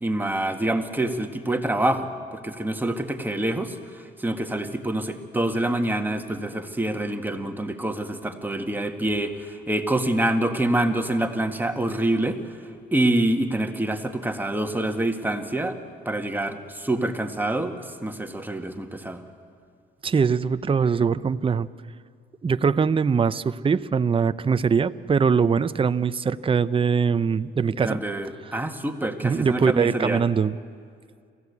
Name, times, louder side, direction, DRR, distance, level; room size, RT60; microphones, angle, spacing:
voice 1, 0.0-12.4 12.9-15.8 16.1-19.2 27.7-30.2, right 1 dB, 10° right, 5 dB, 1.8 m, -26 dB
voice 2, 20.0-21.7 22.4-28.0 29.2-30.6, right 6 dB, 25° right, 13 dB, 0.6 m, -22 dB
27.0 x 15.5 x 8.3 m, 2.2 s
cardioid pair, 90°, 20 cm